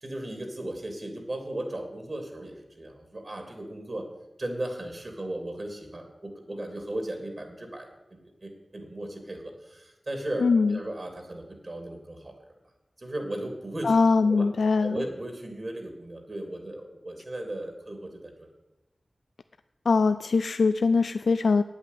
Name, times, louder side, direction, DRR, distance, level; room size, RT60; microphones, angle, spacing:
voice 1, 0.0-4.1 4.4-12.4 13.0-14.5 14.7-18.5, right 1 dB, 55° right, 3 dB, 2.9 m, -36 dB
voice 2, 10.4-10.8 13.8-15.0 19.9-21.6, left 4 dB, 85° left, 11 dB, 0.3 m, -22 dB
8.7 x 8.3 x 8.4 m, 0.97 s
cardioid pair, 45°, 0 cm